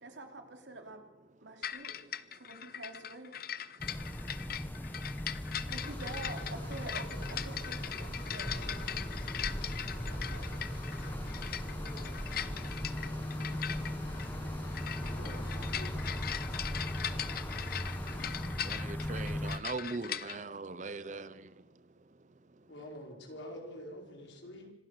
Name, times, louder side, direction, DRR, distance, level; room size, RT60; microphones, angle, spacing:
voice 1, 0.0-1.0 1.4-1.9 2.3-3.3 5.7-9.0 10.1-10.5 11.8-12.1 12.5-12.8 15.5-15.6 16.1-16.2, right 2 dB, 75° right, 4 dB, 3.1 m, -47 dB
sound 1, 1.6-20.4, left 10 dB, 50° left, 0.7 m, -40 dB
sound 2, 3.8-19.6, left 1 dB, 10° left, 1.0 m, -38 dB
sound 3, 5.8-18.4, equal, 25° left, 6.7 m, -50 dB
voice 2, 15.0-16.0 22.7-24.7, left 1 dB, 75° left, 1 dB, 4.9 m, -47 dB
voice 3, 18.7-21.3, right 3 dB, 40° right, 15 dB, 0.7 m, -40 dB
26.0 x 15.5 x 6.8 m, 1.0 s
head